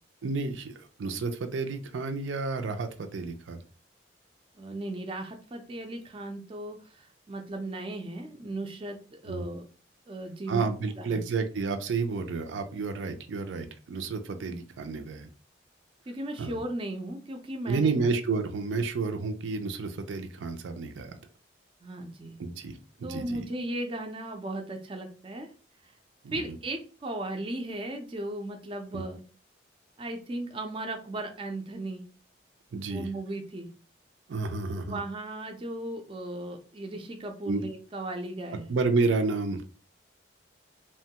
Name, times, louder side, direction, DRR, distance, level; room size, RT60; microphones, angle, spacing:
voice 1, 0.2-3.6 9.3-9.4 10.5-15.3 16.4-16.6 17.7-21.2 22.4-23.4 26.2-26.4 28.9-29.0 32.7-33.1 34.3-35.0 37.5-37.6 38.7-39.6, right 4 dB, 85° right, 7 dB, 0.4 m, -30 dB
voice 2, 4.6-9.6 10.1-10.6 11.0-11.2 14.5-14.6 16.1-18.1 21.8-22.4 23.0-25.5 25.8-25.9 26.3-29.2 30.0-32.0 32.9-33.7 34.9-38.7, right 1 dB, 30° right, 4 dB, 0.4 m, -36 dB
3.0 x 2.2 x 2.8 m, 0.37 s
head